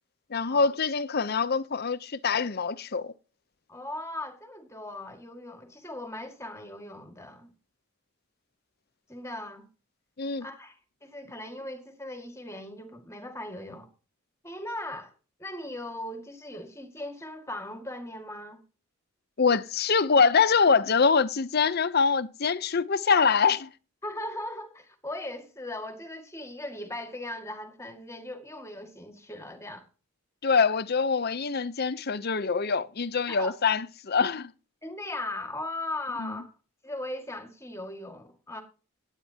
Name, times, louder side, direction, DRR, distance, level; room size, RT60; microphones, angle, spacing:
voice 1, 0.3-3.1 10.2-10.5 19.4-23.7 30.4-34.5 36.2-36.4, left 5 dB, 45° left, 0.7 m, -24 dB
voice 2, 3.7-7.5 9.1-9.7 10.4-10.8 11.0-13.9 14.4-15.1 15.4-18.6 24.0-29.9 33.3-33.6 34.8-36.5 36.8-38.6, left 1 dB, 15° left, 1.9 m, -38 dB
17.5 x 8.9 x 2.8 m
head